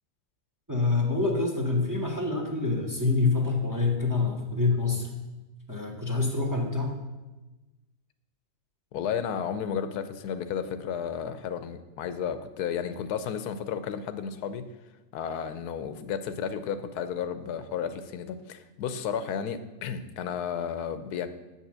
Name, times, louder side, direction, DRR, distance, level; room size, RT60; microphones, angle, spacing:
voice 1, 0.7-5.1 5.7-6.9, left 3 dB, 15° right, 1 dB, 1.0 m, -26 dB
voice 2, 8.9-14.7 15.1-21.3, left 7 dB, 90° left, 11 dB, 1.2 m, -33 dB
7.3 x 5.6 x 7.4 m, 1.1 s
omnidirectional pair, 1.6 m